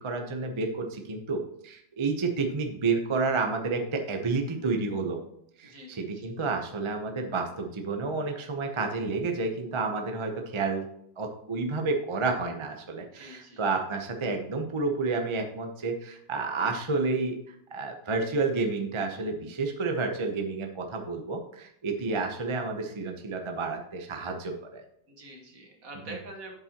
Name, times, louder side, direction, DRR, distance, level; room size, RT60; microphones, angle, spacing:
voice 1, 0.0-5.2 5.6-10.8 11.2-24.8 26.1-26.2, right 3 dB, 40° right, 3 dB, 0.4 m, -30 dB
voice 2, 5.7-6.3 13.1-13.6 25.1-26.6, right 2 dB, 55° right, 2 dB, 1.8 m, -45 dB
8.1 x 7.3 x 2.9 m, 0.75 s
omnidirectional pair, 1.9 m